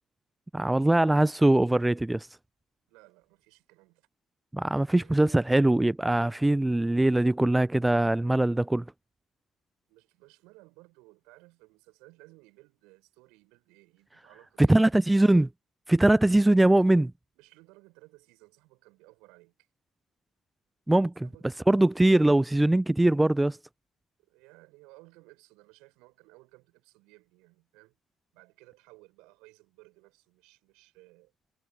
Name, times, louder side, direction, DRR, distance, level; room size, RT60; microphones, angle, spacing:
voice 1, 0.5-2.3 4.5-8.8 14.6-15.5 15.9-17.1 20.9-21.3 21.7-23.6, right 1 dB, 10° right, 0.5 m, -22 dB
voice 2, 2.9-4.1 4.9-5.5 9.9-15.0 17.4-19.7 21.2-21.5 24.2-28.0 28.3-31.3, right 24 dB, 70° right, 6.6 m, -57 dB
figure-of-eight pair, 45°, 0 cm